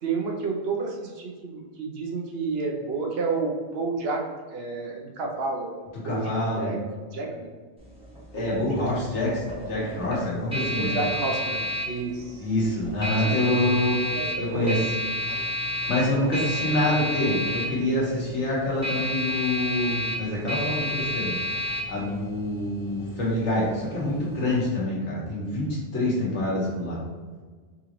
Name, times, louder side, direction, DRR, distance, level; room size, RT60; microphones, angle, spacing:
voice 1, 0.0-4.2 4.5-5.7 6.0-6.2 6.6-6.8 7.1-7.5 8.3-8.9 10.8-12.4 13.1-13.3 13.6-13.8 14.1-14.8, right 4 dB, 65° right, 0 dB, 0.8 m, -30 dB
voice 2, 6.0-6.7 8.3-10.9 12.4-14.0 14.4-14.8 15.9-21.4 21.9-27.0, left 1 dB, 85° left, -6 dB, 1.6 m, -26 dB
sound 1, 7.8-24.6, equal, 5° right, 0.8 m, -31 dB
3.7 x 3.7 x 3.0 m, 1.5 s
omnidirectional pair, 1.2 m